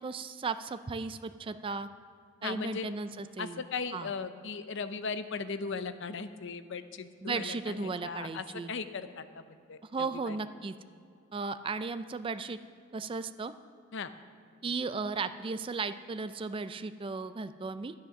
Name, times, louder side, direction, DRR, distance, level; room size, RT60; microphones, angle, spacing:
voice 1, 0.0-1.9 2.4-3.6 3.9-4.1 7.2-8.7 9.8-10.7 11.3-12.6 12.9-13.5 14.6-17.9, right 4 dB, 25° right, 12 dB, 0.3 m, -35 dB
voice 2, 2.4-2.9 3.4-10.4 13.9-14.1, left 4 dB, 60° left, 11 dB, 0.6 m, -38 dB
12.5 x 9.5 x 6.0 m, 2.4 s
head